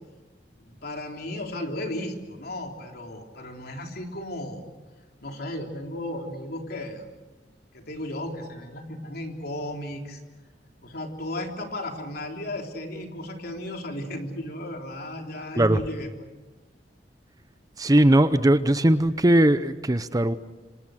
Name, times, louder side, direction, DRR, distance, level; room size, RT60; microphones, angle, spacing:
voice 1, 0.6-4.7 5.2-7.1 7.7-10.2 10.6-16.1, left 1 dB, 60° left, 3 dB, 3.6 m, -35 dB
voice 2, 17.8-20.3, right 1 dB, 20° right, 12 dB, 0.8 m, -19 dB
27.5 x 26.0 x 6.5 m, 1.2 s
head